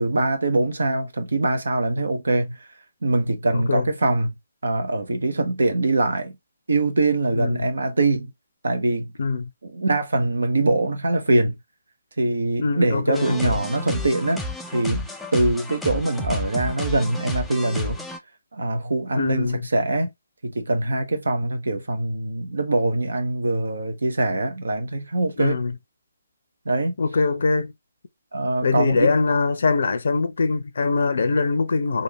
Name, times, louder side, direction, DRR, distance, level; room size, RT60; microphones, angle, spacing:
voice 1, 0.0-2.6 3.0-4.3 4.6-6.4 6.7-8.3 8.6-9.1 9.6-11.6 12.2-14.5 14.7-18.0 18.5-20.1 20.4-25.6 26.7-26.9 28.3-29.1, right 2 dB, 65° right, 0.8 m, -23 dB
voice 2, 3.5-3.9 7.4-7.7 9.2-9.5 12.6-13.5 19.2-19.7 25.4-25.7 27.0-27.7 28.6-32.0, left 4 dB, 55° left, 0.6 m, -22 dB
sound 1, 13.1-18.2, left 1 dB, ahead, 0.4 m, -32 dB
3.5 x 2.5 x 2.9 m
figure-of-eight pair, 140°, 0 cm